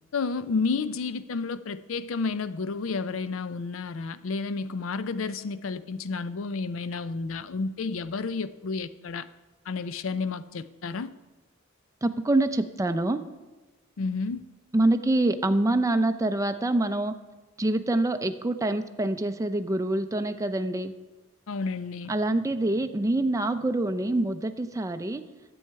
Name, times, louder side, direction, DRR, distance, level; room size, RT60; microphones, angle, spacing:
voice 1, 0.1-9.3 9.7-11.1 14.0-14.4 21.5-22.1, left 4 dB, 75° left, 0.5 m, -31 dB
voice 2, 12.0-13.2 14.7-17.1 17.6-20.9 22.1-25.2, right 2 dB, 15° right, 0.5 m, -25 dB
10.5 x 7.9 x 4.6 m
head